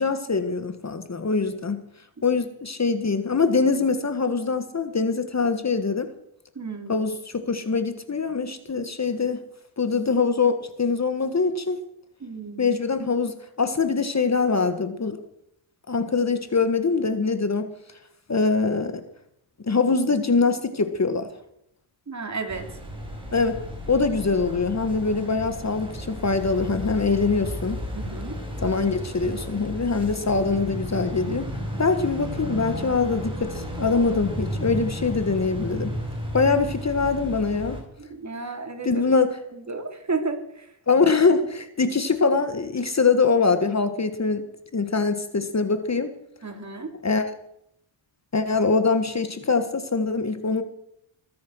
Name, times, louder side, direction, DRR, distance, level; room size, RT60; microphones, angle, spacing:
voice 1, 0.0-1.8 2.2-6.1 6.9-9.4 9.8-11.8 12.6-15.2 15.9-17.7 18.3-19.0 19.7-21.3 23.3-23.6 23.9-27.8 28.6-31.5 31.8-35.9 36.3-37.8 38.8-39.4 40.9-44.4 44.7-46.1 47.0-47.4 48.3-50.6, left 4 dB, 30° left, 10 dB, 1.5 m, -23 dB
voice 2, 6.5-7.1 12.2-12.7 22.1-22.7 27.9-28.4 38.0-39.0 39.7-40.6 46.4-46.9, right 3 dB, 35° right, 6 dB, 2.9 m, -32 dB
sound 1, 22.5-37.8, equal, 10° right, 5.5 m, -33 dB
21.0 x 9.5 x 6.3 m, 0.75 s
cardioid pair, 90°, 50 cm